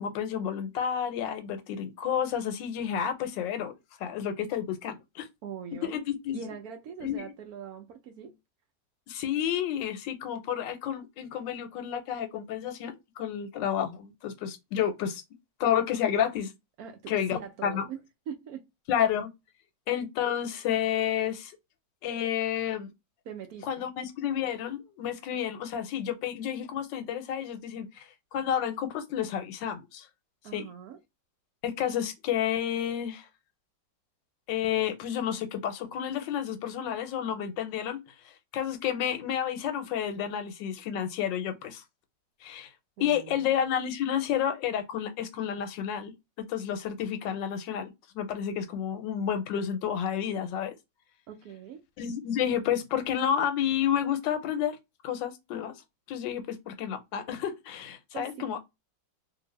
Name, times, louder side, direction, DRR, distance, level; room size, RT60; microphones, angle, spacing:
voice 1, 0.0-5.3 5.8-6.5 7.0-7.3 9.1-15.2 15.6-16.5 17.1-17.8 18.9-19.3 19.9-21.5 22.0-22.9 23.7-30.1 30.5-30.7 31.6-33.3 34.5-38.0 38.5-41.8 42.4-42.7 43.0-46.1 46.5-50.7 52.0-54.8 55.0-55.7 56.1-58.6, left 9 dB, 90° left, 1.3 m, -30 dB
voice 2, 5.4-6.0 6.3-8.4 16.8-18.6 23.3-23.8 30.4-31.0 43.0-43.4 51.3-51.8 58.1-58.6, right 8 dB, 70° right, 0.9 m, -42 dB
2.7 x 2.6 x 3.1 m
omnidirectional pair, 2.0 m